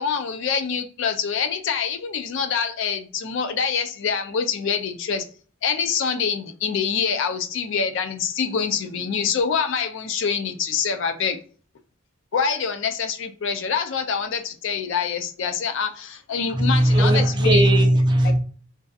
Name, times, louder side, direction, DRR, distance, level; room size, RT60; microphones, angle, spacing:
voice 1, 0.0-5.2 5.6-11.4 12.3-17.8 18.2-18.3, left 6 dB, 60° left, 0.4 m, -25 dB
voice 2, 16.5-18.4, right 1 dB, 20° right, 0.4 m, -17 dB
2.6 x 2.4 x 2.3 m
head